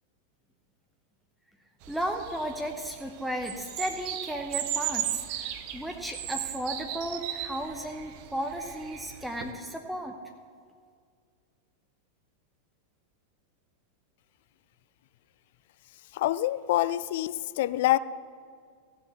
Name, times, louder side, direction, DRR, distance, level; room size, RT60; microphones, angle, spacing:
sound 1, 1.8-9.5, right 11 dB, 45° right, 0.9 m, -36 dB
voice 1, 1.9-10.1, right 1 dB, ahead, 2 dB, 0.9 m, -34 dB
voice 2, 16.1-18.0, left 15 dB, 55° left, 17 dB, 0.4 m, -26 dB
16.0 x 7.0 x 6.6 m, 2.1 s
figure-of-eight pair, 90°, 0 cm